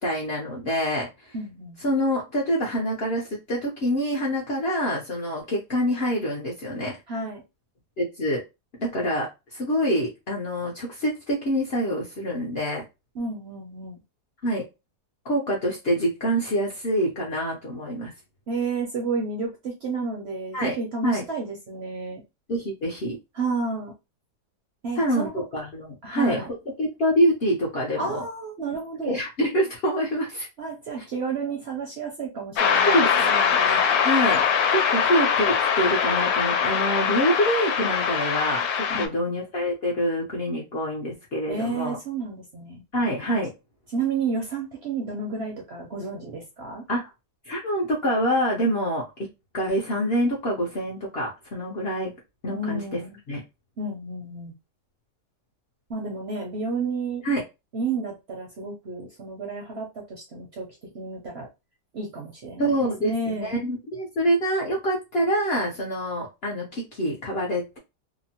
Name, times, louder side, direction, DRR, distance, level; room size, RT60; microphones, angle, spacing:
voice 1, 0.0-1.3 1.8-7.0 8.0-8.4 8.8-12.8 14.4-14.6 15.2-18.1 20.5-20.8 21.0-21.2 22.5-23.2 25.0-28.2 29.0-30.5 32.8-33.1 33.4-34.4 34.7-42.0 42.9-43.5 46.9-47.1 47.5-49.3 49.5-52.1 52.4-52.8 53.3-53.4 57.2-57.4 62.6-67.8, equal, 55° left, -2 dB, 0.7 m, -26 dB
voice 2, 1.3-1.8 7.1-7.4 13.1-14.0 18.5-22.2 23.3-23.9 24.8-25.4 26.0-26.5 28.0-29.2 30.6-33.6 38.9-39.3 41.5-42.8 43.9-46.9 52.5-53.2 53.8-54.5 55.9-57.2 57.7-60.7 60.9-61.5 61.9-63.6, right 4 dB, 55° right, 0 dB, 0.8 m, -31 dB
sound 1, 32.6-39.1, left 7 dB, 75° left, 1.0 m, -22 dB
2.9 x 2.0 x 2.8 m, 0.24 s
omnidirectional pair, 1.7 m